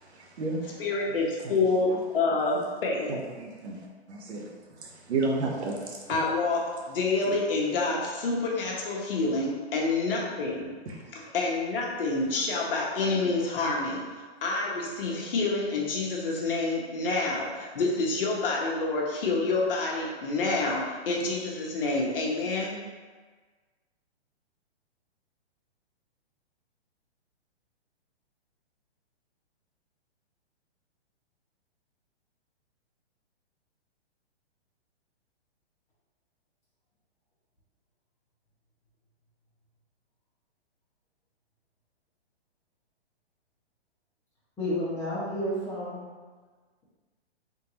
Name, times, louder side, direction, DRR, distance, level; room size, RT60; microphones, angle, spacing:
voice 1, 0.0-0.8 1.4-1.6 1.9-2.0 2.5-2.6 3.1-3.8 4.1-4.4 4.8-6.2 7.2-7.4 10.9-11.0, right 3 dB, 75° right, 0 dB, 1.0 m, -32 dB
voice 2, 0.8-3.1 6.1-10.7 11.1-14.1 14.4-22.8, left 3 dB, 55° left, -2 dB, 1.0 m, -28 dB
voice 3, 44.6-46.0, left 1 dB, 10° left, -11 dB, 1.1 m, -30 dB
3.7 x 3.6 x 3.0 m, 1.4 s
hypercardioid pair, 160°, 33 cm